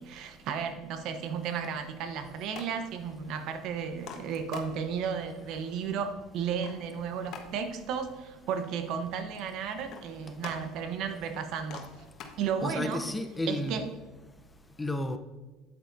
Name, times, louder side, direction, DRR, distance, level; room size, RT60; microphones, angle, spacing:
voice 1, 0.0-11.9 12.4-13.0 13.5-13.9, right 7 dB, 60° right, 0.9 m, -34 dB
sound 1, 2.1-13.0, left 6 dB, 55° left, 1.2 m, -50 dB
voice 2, 12.6-13.9 14.8-15.2, left 1 dB, 15° left, 0.7 m, -32 dB
8.6 x 8.3 x 2.6 m
supercardioid pair, 90°, 0 cm